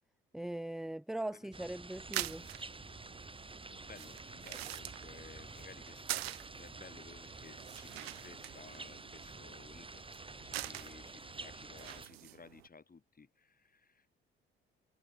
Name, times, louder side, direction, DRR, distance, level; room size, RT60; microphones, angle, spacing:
voice 1, 0.3-2.4, right 1 dB, ahead, 0.5 m, -40 dB
voice 2, 1.3-1.7 3.7-14.1, left 4 dB, 30° left, 5.5 m, -57 dB
sound 1, 1.5-12.1, right 3 dB, 15° right, 2.5 m, -49 dB
sound 2, 1.9-12.7, right 17 dB, 80° right, 0.6 m, -46 dB
figure-of-eight pair, 50°, 30 cm